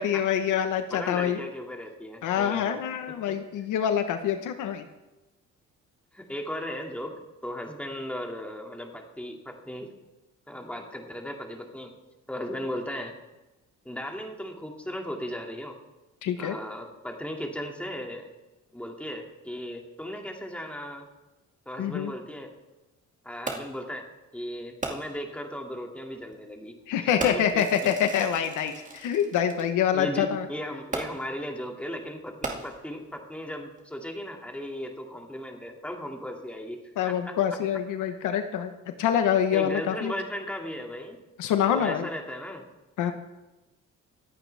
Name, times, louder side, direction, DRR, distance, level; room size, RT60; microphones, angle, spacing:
voice 1, 0.0-1.4 2.2-4.8 16.2-16.6 21.8-22.1 26.9-30.5 37.0-38.7 39.0-40.1 41.4-42.1 43.0-43.1, left 9 dB, 85° left, 8 dB, 1.2 m, -26 dB
voice 2, 0.9-2.8 3.3-3.4 6.1-9.9 10.5-11.9 12.3-13.1 13.8-15.8 16.4-18.3 18.7-21.1 21.7-22.5 23.2-24.1 24.3-27.6 29.9-37.4 38.1-38.2 39.5-41.2 41.7-42.7, equal, 5° left, 1 dB, 2.4 m, -36 dB
Fireworks, 23.5-23.9 24.8-25.3 26.2-26.4 27.2-29.6 30.9-31.4 32.3-33.1 33.8-33.9, right 2 dB, 25° right, 2.2 m, -36 dB
25.0 x 8.9 x 3.5 m, 1.0 s
cardioid pair, 90°, 30 cm